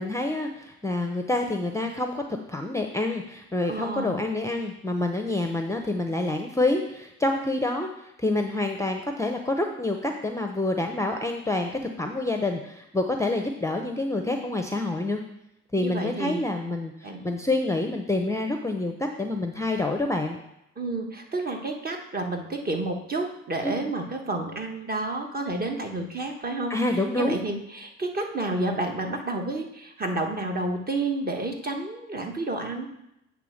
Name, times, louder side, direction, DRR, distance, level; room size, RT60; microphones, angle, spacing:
voice 1, 0.0-11.7 12.0-15.2 15.7-20.4 23.6-23.7 26.7-27.4, left 2 dB, 10° left, 4 dB, 0.6 m, -27 dB
voice 2, 3.7-4.2 15.8-16.4 17.0-17.2 20.8-32.9, right 2 dB, 30° right, 3 dB, 1.4 m, -30 dB
8.5 x 3.5 x 6.4 m, 0.83 s
cardioid pair, 90°, 30 cm